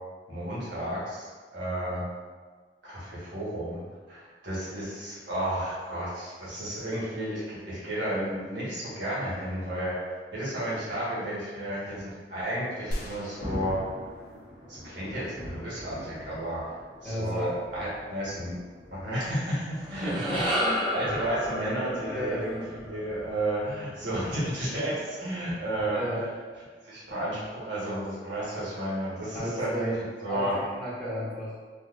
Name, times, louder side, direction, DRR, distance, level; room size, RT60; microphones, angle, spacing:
voice 1, 0.3-2.1 2.8-3.8 4.1-9.9 10.3-13.8 14.7-16.6 17.0-18.5 18.9-26.0 26.8-29.9 30.2-30.5, right 1 dB, 80° right, -8 dB, 1.3 m, -32 dB
Thunder, 12.8-23.5, equal, 45° right, 1.4 m, -44 dB
sound 1, 12.9-15.8, equal, 60° left, 0.5 m, -40 dB
voice 2, 17.0-17.6 20.0-20.4 21.0-21.1 22.0-22.5 25.9-26.3 29.3-30.0 30.3-31.6, equal, 5° left, -8 dB, 0.8 m, -33 dB
sound 2, 19.7-24.2, equal, 30° right, 0.5 m, -32 dB
3.7 x 2.5 x 2.4 m, 1.5 s
head